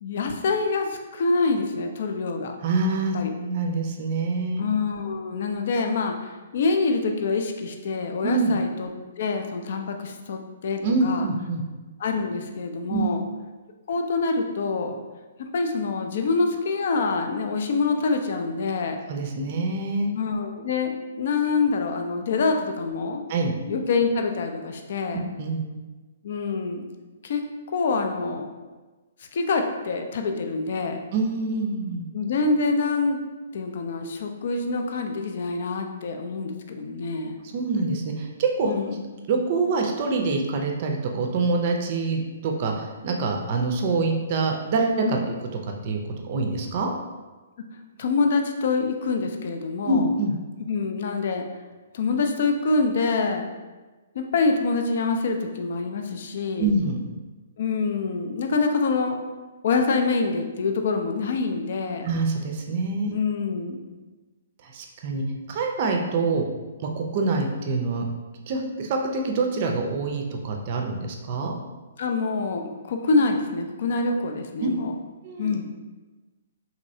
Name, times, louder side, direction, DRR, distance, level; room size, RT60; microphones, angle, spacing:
voice 1, 0.0-2.6 3.1-3.3 4.6-8.9 9.2-11.3 12.0-13.2 13.9-15.0 15.4-19.0 20.1-23.2 23.7-25.2 26.2-26.9 27.2-27.4 27.7-28.5 29.3-31.0 32.1-33.2 33.5-37.4 38.6-39.0 45.0-45.2 48.0-50.1 50.7-51.4 51.9-53.5 54.2-56.7 57.6-59.2 59.6-62.1 63.1-64.0 72.0-74.9 75.4-75.6, left 4 dB, 60° left, 4 dB, 0.4 m, -26 dB
voice 2, 2.6-4.6 8.2-8.5 10.8-11.6 12.9-13.1 19.1-20.1 23.3-23.5 25.1-25.6 31.1-32.0 37.5-38.7 39.3-45.3 45.8-46.0 46.2-46.9 49.8-50.4 56.6-57.0 62.0-63.1 64.6-66.4 66.8-68.1 68.5-71.5 74.6-74.7 75.2-75.6, right 3 dB, 45° right, 3 dB, 0.4 m, -25 dB
3.0 x 2.7 x 2.7 m, 1.2 s
hypercardioid pair, 135°, 0 cm